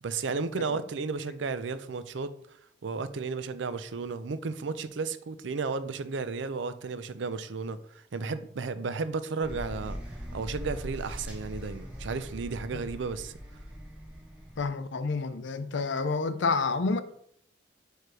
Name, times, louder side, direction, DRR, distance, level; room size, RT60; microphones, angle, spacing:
voice 1, 0.0-2.3 2.8-10.0 10.3-13.3, right 4 dB, 75° right, 0.5 m, -33 dB
sound 1, 9.4-14.7, equal, 5° right, 1.3 m, -41 dB
voice 2, 14.6-17.0, left 4 dB, 75° left, 0.5 m, -29 dB
4.8 x 4.6 x 4.7 m
head